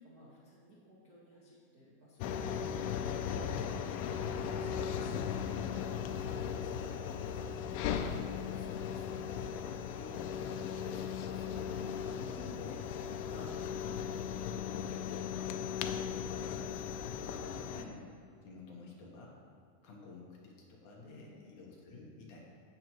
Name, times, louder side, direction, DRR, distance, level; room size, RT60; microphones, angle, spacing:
voice 1, 0.0-5.8 6.5-7.6 12.1-12.8 17.4-17.9 21.0-21.6, equal, 85° right, -8 dB, 0.8 m, -56 dB
sound 1, 2.2-17.8, left 8 dB, 85° left, 2.3 m, -37 dB
voice 2, 8.5-12.8 13.3-14.0 14.4-15.5 15.8-18.1 18.4-19.4 19.8-22.4, left 3 dB, 65° left, -3 dB, 2.4 m, -52 dB
16.0 x 6.7 x 3.0 m, 2.2 s
omnidirectional pair, 4.3 m